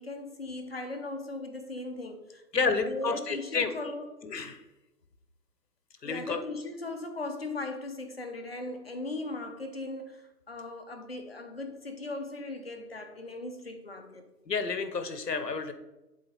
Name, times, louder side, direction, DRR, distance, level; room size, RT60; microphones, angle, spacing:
voice 1, 0.0-4.1 6.0-14.2, left 2 dB, 40° left, 5 dB, 0.7 m, -38 dB
voice 2, 2.5-3.7 4.2-4.6 6.0-6.4 14.5-15.7, left 4 dB, 75° left, 10 dB, 1.1 m, -30 dB
8.0 x 3.6 x 5.3 m, 1.0 s
figure-of-eight pair, 165°, 49 cm